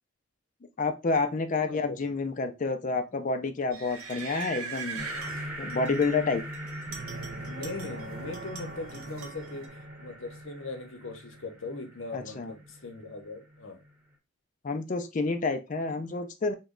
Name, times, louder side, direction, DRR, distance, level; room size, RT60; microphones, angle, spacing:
voice 1, 0.8-5.1 5.6-6.4 12.1-12.5 14.6-16.5, left 3 dB, 35° left, 8 dB, 0.4 m, -29 dB
voice 2, 1.7-2.1 7.5-9.7 10.0-13.8, left 3 dB, 60° left, 5 dB, 0.8 m, -40 dB
sound 1, 3.7-6.1 6.5-8.1 8.3-9.7, right 5 dB, 85° right, 0.7 m, -41 dB
sound 2, 5.0-13.9, equal, 10° right, 0.8 m, -41 dB
sound 3, 6.9-10.6, right 4 dB, 55° right, 0.4 m, -44 dB
3.0 x 2.2 x 3.7 m, 0.26 s
head